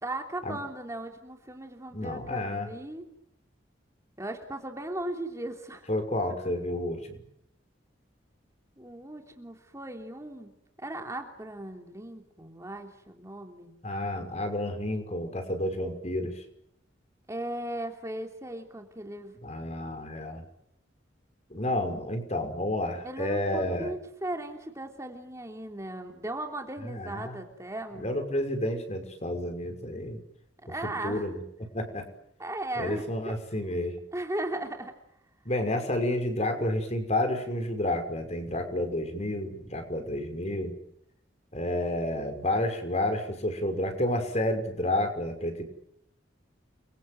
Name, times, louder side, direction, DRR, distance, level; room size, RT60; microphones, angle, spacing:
voice 1, 0.0-3.0 4.2-5.9 8.8-10.5 10.8-13.7 17.3-19.4 23.0-28.1 30.7-31.3 32.4-33.3 34.1-34.9, right 1 dB, 15° right, 3 dB, 3.1 m, -37 dB
voice 2, 1.9-2.7 5.9-7.2 13.8-16.4 19.4-20.4 21.5-23.9 26.8-27.4 28.0-30.2 30.8-31.4 31.7-32.1 32.8-33.9 35.5-40.7 41.5-45.6, left 1 dB, 35° left, 6 dB, 5.7 m, -30 dB
30.0 x 24.0 x 7.9 m, 0.76 s
head